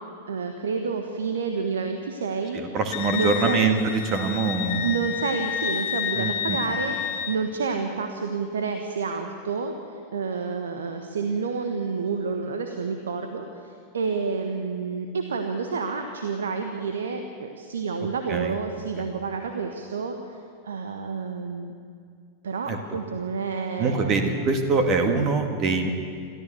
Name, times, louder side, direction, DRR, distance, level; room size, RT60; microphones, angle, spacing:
voice 1, 0.3-2.6 3.1-3.8 4.8-20.4 20.6-21.7 22.4-24.3, right 5 dB, 65° right, 5 dB, 1.3 m, -29 dB
voice 2, 2.5-5.0 6.1-6.6 18.3-18.6 19.0-19.1 22.6-23.0 23.8-25.9, right 4 dB, 35° right, 5 dB, 2.0 m, -24 dB
Wind instrument woodwind instrument, 2.9-7.4, left 9 dB, 50° left, 1.0 m, -30 dB
27.5 x 14.5 x 7.1 m, 2.3 s
figure-of-eight pair, 90°, 0 cm